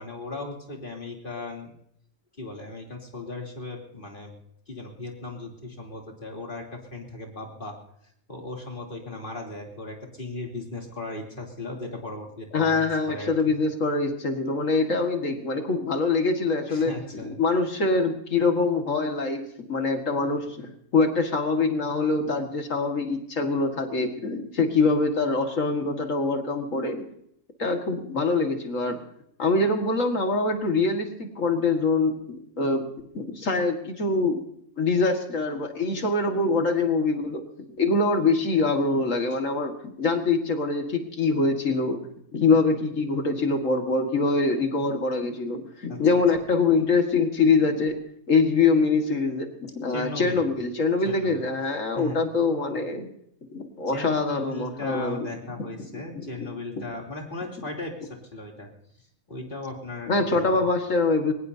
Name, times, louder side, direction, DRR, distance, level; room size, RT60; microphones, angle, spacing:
voice 1, 0.0-1.7 2.4-4.4 4.7-7.8 8.3-13.3 16.7-17.4 45.9-46.0 49.9-50.4 51.1-51.4 52.0-52.2 53.9-58.7 59.3-60.6, left 2 dB, 35° left, 0 dB, 3.3 m, -37 dB
voice 2, 12.5-16.9 17.2-19.4 19.7-27.1 27.6-29.0 29.4-34.4 34.8-37.4 37.8-42.0 42.3-53.1 53.5-55.3 55.9-56.5 56.8-56.9 60.1-61.3, left 3 dB, 65° left, 4 dB, 2.3 m, -24 dB
22.5 x 19.5 x 2.8 m, 0.72 s
omnidirectional pair, 1.5 m